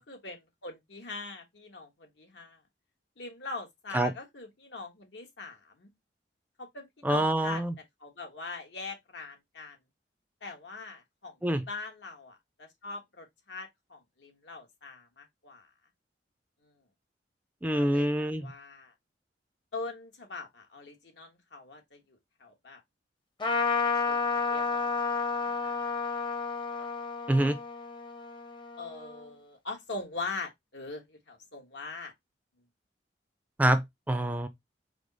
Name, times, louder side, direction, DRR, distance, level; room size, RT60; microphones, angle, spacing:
voice 1, 0.0-2.6 3.2-5.9 6.6-7.6 8.0-9.8 10.4-11.3 11.7-15.7 16.6-16.7 17.7-18.9 19.7-22.8 23.4-23.8 24.0-25.9 28.8-32.1, left 3 dB, 75° left, 1.3 m, -42 dB
voice 2, 7.0-7.7 11.4-11.6 17.6-18.5 27.3-27.6 33.6-34.5, right 1 dB, 10° right, 0.4 m, -26 dB
Trumpet, 23.4-29.2, left 4 dB, 25° left, 0.7 m, -31 dB
4.9 x 2.0 x 3.9 m
head